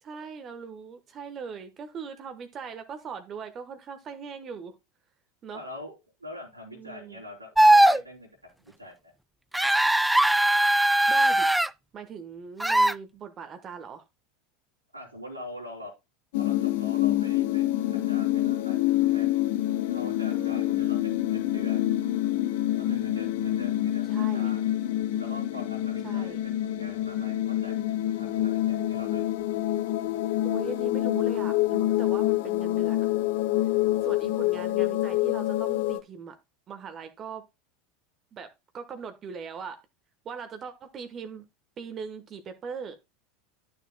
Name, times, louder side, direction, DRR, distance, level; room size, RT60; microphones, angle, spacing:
voice 1, 0.0-4.7 5.4-5.6 6.7-7.2 11.1-11.5 11.9-14.0 20.3-20.9 24.1-24.5 26.0-26.4 30.4-33.1 34.0-36.4 36.7-37.4 38.3-38.5 38.7-39.8 40.2-41.5 41.8-43.0, right 6 dB, 35° right, 1.2 m, -40 dB
voice 2, 5.5-5.9 6.2-8.3 8.6-9.1 14.9-15.9 16.3-19.3 19.9-22.0 22.8-24.7 25.2-29.3 33.9-34.7, left 1 dB, 90° right, 3.4 m, -44 dB
sound 1, 7.6-8.0 9.5-11.7 12.6-12.9, right 1 dB, 5° right, 0.3 m, -19 dB
sound 2, 16.3-36.0, left 14 dB, 60° left, 0.7 m, -26 dB
12.5 x 6.8 x 2.2 m
figure-of-eight pair, 75°, 0 cm